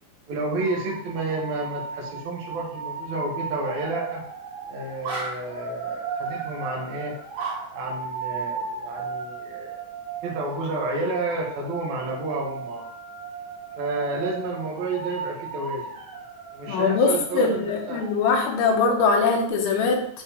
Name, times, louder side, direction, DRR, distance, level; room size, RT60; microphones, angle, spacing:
voice 1, 0.3-4.2 4.7-7.2 7.7-9.8 10.2-12.8 13.8-15.9 16.5-18.0, right 2 dB, 80° right, -2 dB, 1.6 m, -30 dB
sound 1, 0.6-19.5, right 4 dB, 60° right, 3.6 m, -36 dB
voice 2, 16.7-20.1, left 4 dB, 80° left, 1 dB, 3.3 m, -22 dB
9.0 x 3.7 x 2.9 m, 0.63 s
omnidirectional pair, 5.4 m